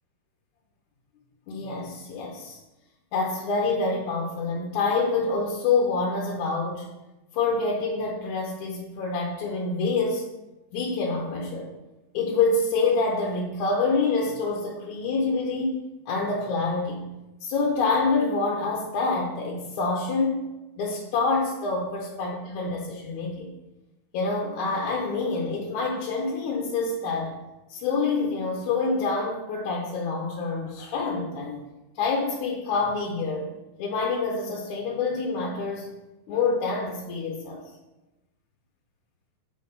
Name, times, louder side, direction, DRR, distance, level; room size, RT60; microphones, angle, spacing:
voice 1, 1.5-2.6 3.1-6.9 7.3-10.3 10.7-11.7 12.1-17.1 17.4-20.4 20.8-23.5 24.1-27.3 27.7-31.6 32.0-33.5 33.8-35.9 36.3-37.6, left 3 dB, 75° left, -1 dB, 2.2 m, -26 dB
8.0 x 4.1 x 5.4 m, 1.0 s
omnidirectional pair, 3.7 m